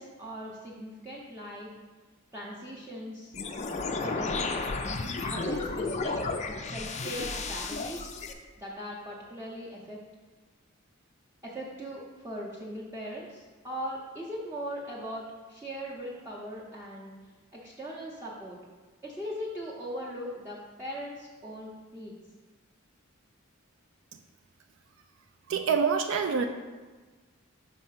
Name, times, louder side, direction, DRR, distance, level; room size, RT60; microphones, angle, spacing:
voice 1, 0.0-1.7 2.3-3.3 4.0-4.8 5.2-6.1 6.7-8.2 8.6-10.0 11.4-17.1 17.5-18.6 19.0-22.1, equal, 10° right, -7 dB, 0.7 m, -39 dB
sound 1, 3.3-8.3, left 3 dB, 30° left, 0.4 m, -33 dB
voice 2, 25.5-26.4, right 6 dB, 60° right, 6 dB, 0.3 m, -26 dB
5.4 x 4.2 x 5.7 m, 1.3 s
head